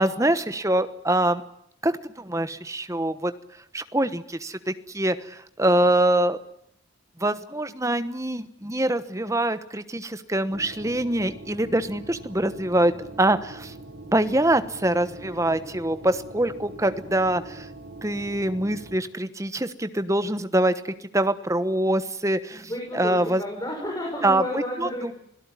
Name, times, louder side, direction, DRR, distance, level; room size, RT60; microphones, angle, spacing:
voice 1, 0.0-1.4 1.8-3.3 3.7-6.4 7.2-13.7 14.1-17.7 18.0-22.6 22.9-23.4 24.2-25.1, right 1 dB, 15° right, 11 dB, 1.1 m, -24 dB
sound 1, 10.5-19.0, right 2 dB, 65° right, 2.6 m, -43 dB
voice 2, 22.5-25.1, equal, 20° left, 0 dB, 5.7 m, -32 dB
26.5 x 17.5 x 9.9 m, 0.73 s
head